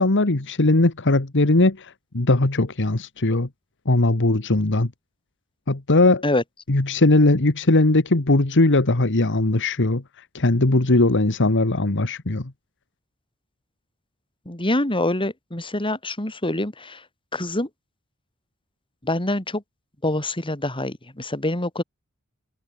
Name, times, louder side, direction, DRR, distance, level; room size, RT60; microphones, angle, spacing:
voice 1, 0.0-3.5 3.8-4.9 5.7-6.2 6.7-10.0 10.3-12.5, left 2 dB, 55° left, 1.6 m, -19 dB
voice 2, 14.5-17.0 17.3-17.7 19.0-19.6 20.0-21.8, left 1 dB, 25° left, 3.8 m, -25 dB
head